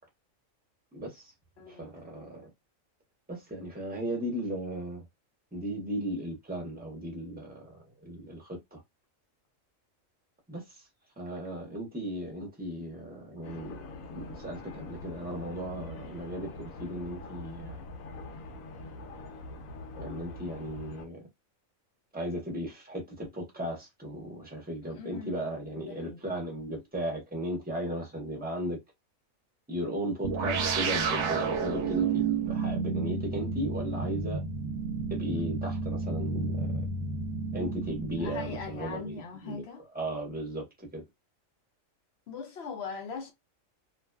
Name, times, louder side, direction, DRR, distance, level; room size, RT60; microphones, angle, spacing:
voice 1, 0.9-1.3 1.7-2.5 3.3-5.0 5.5-8.8 10.5-10.6 11.2-13.8 14.1-17.8 19.9-21.2 22.1-28.8 29.7-34.4 35.1-36.8 37.5-39.6 39.9-41.0, equal, 10° right, 0.6 m, -36 dB
voice 2, 1.6-1.9 24.9-25.4 25.7-26.2 38.2-39.8 42.3-43.3, left 5 dB, 60° left, 0.8 m, -40 dB
sound 1, 13.4-21.1, left 2 dB, 80° left, 1.0 m, -43 dB
sound 2, 30.2-39.1, right 5 dB, 70° right, 0.9 m, -31 dB
2.6 x 2.2 x 2.2 m
omnidirectional pair, 1.4 m